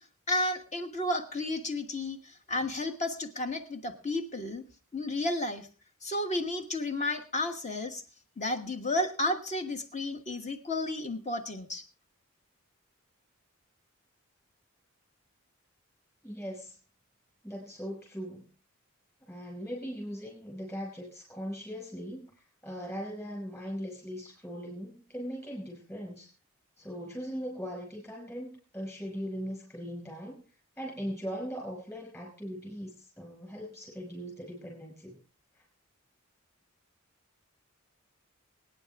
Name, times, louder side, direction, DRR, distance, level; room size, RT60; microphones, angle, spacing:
voice 1, 0.3-4.6 4.9-5.7 6.0-8.0 8.4-11.8, left 2 dB, 35° left, 6 dB, 1.4 m, -32 dB
voice 2, 16.2-16.8 17.4-18.5 19.3-26.3 26.8-30.4 30.8-35.2, equal, 15° left, -1 dB, 5.4 m, -39 dB
24.0 x 9.5 x 3.5 m, 0.36 s
head